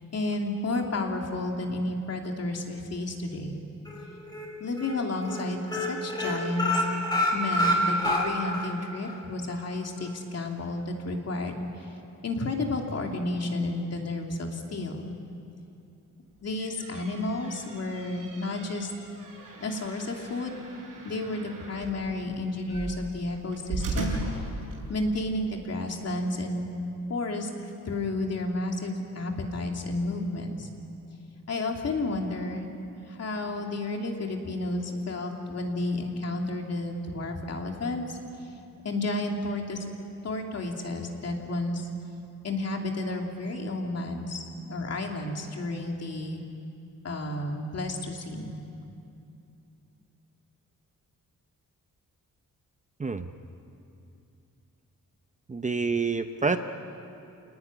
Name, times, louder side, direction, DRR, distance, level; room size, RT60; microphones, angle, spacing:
voice 1, 0.1-3.6 4.6-6.9 7.3-11.9 12.2-15.1 16.4-18.9 19.6-20.6 21.0-24.4 24.9-26.7 27.1-27.5 27.8-30.7 31.5-32.7 33.0-38.5 38.8-39.9 40.2-41.9 42.4-46.4 47.0-48.6, left 2 dB, 50° left, 2 dB, 3.0 m, -31 dB
sound 1, 3.8-4.4 4.8-5.0 5.2-5.4 5.7-8.7 9.0-9.1 9.5-9.6, left 1 dB, 10° left, 5.3 m, -27 dB
sound 2, 16.3-25.2, right 2 dB, 85° right, 7.5 m, -38 dB
voice 2, 55.5-56.6, right 4 dB, 25° right, 8 dB, 0.8 m, -27 dB
28.5 x 19.0 x 9.8 m, 2.7 s
wide cardioid pair, 155°, 32 cm